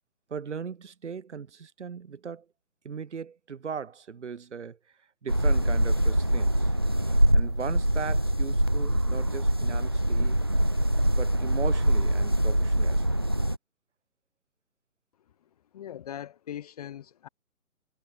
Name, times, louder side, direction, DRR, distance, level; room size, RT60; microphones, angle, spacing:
voice 1, 0.3-2.5 2.8-4.8 5.2-6.7 7.3-10.4 10.9-13.0, right 6 dB, 55° right, 5.8 m, -38 dB
sound 1, 5.3-13.6, right 1 dB, 20° right, 0.5 m, -24 dB
voice 2, 15.7-17.3, left 10 dB, 25° left, 2.0 m, -40 dB
hypercardioid pair, 160°, 42 cm